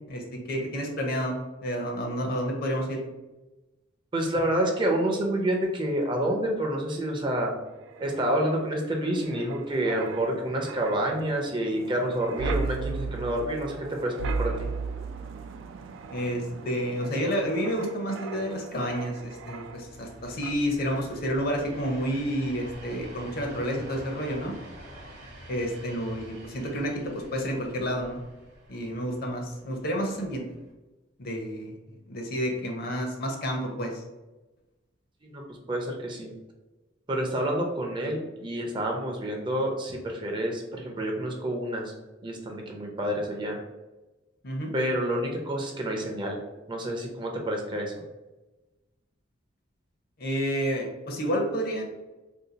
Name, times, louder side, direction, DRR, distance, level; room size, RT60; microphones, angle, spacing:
voice 1, 0.1-3.0 16.1-24.5 25.5-28.2 28.7-30.4 31.2-34.0 44.4-44.7 50.2-51.8, equal, 50° left, 1 dB, 0.6 m, -30 dB
voice 2, 4.1-7.5 8.0-14.7 35.2-35.4 35.7-36.3 37.1-41.9 42.2-43.6 44.7-46.4 46.7-47.9, right 1 dB, 25° right, 1 dB, 0.5 m, -28 dB
Wind, 7.7-20.1 20.4-20.7, right 4 dB, 85° right, 0.3 m, -36 dB
sound 1, 18.8-30.7, right 1 dB, 55° right, 1.0 m, -48 dB
2.7 x 2.3 x 3.8 m, 1.1 s
head